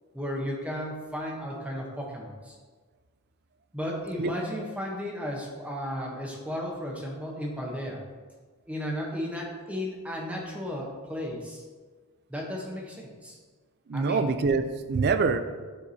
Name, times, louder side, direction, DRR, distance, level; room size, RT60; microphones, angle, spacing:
voice 1, 0.1-2.6 3.7-8.0 8.7-11.6 12.3-13.4 13.9-14.3, equal, 5° right, -2 dB, 0.9 m, -34 dB
voice 2, 13.9-15.4, right 4 dB, 45° right, 10 dB, 0.4 m, -25 dB
9.2 x 4.7 x 2.8 m, 1.4 s
head